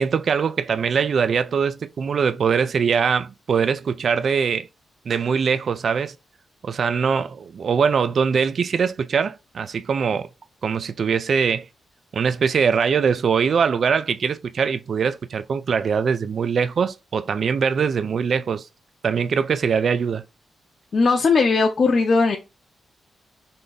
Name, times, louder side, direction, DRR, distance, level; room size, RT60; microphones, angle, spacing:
voice 1, 0.0-4.7 5.1-6.1 6.6-10.3 10.6-11.7 12.1-18.7 19.0-20.2, right 6 dB, 50° right, 0.3 m, -22 dB
voice 2, 20.9-22.4, left 4 dB, 40° left, 0.6 m, -18 dB
3.7 x 3.3 x 3.9 m
wide cardioid pair, 150°, 0 cm